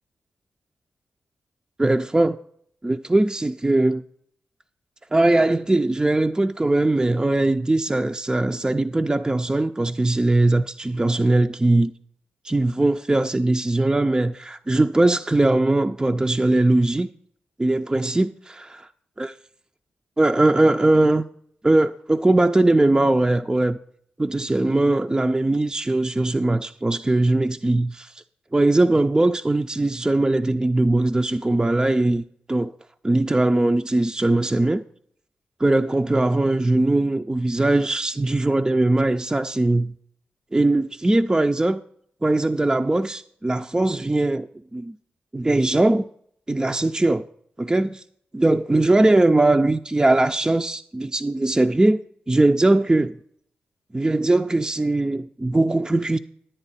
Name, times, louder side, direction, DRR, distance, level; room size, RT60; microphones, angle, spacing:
voice 1, 1.8-2.4 2.8-4.0 5.1-11.9 12.4-17.1 17.6-18.9 19.2-19.3 20.2-21.2 21.6-23.8 24.2-28.1 28.5-32.2 32.5-32.7 33.0-34.8 35.6-39.9 40.5-41.8 42.2-45.0 45.3-46.1 46.5-47.2 47.6-48.0 48.3-52.0 52.3-53.2 53.9-56.2, right 2 dB, 20° right, 0.4 m, -20 dB
10.0 x 8.9 x 4.1 m
supercardioid pair, 40°, 4 cm